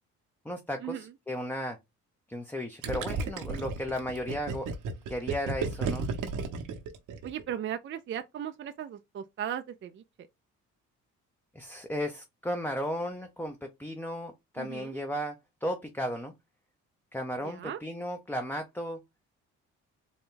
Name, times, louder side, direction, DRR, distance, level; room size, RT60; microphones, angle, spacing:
voice 1, 0.4-1.8 2.3-4.7 5.1-6.1 11.5-15.4 15.6-16.3 17.1-19.0, equal, 5° left, 0.6 m, -35 dB
Gurgling, 2.8-7.5, right 4 dB, 85° right, 0.9 m, -33 dB
voice 2, 7.2-10.0 14.6-14.9 17.4-17.8, right 10 dB, 40° right, 0.4 m, -37 dB
4.0 x 2.2 x 3.7 m
cardioid pair, 90°, 30 cm